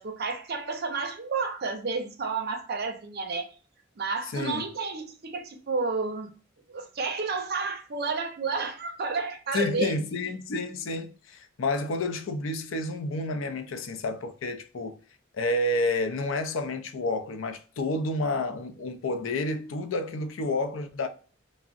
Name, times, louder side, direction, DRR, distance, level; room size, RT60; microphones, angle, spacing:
voice 1, 0.0-3.5 4.0-6.3 6.7-10.0, right 4 dB, 55° right, 0.6 m, -31 dB
voice 2, 4.3-4.6 9.5-15.0 15.3-21.1, left 2 dB, 80° left, 0.5 m, -30 dB
3.5 x 2.0 x 2.4 m
head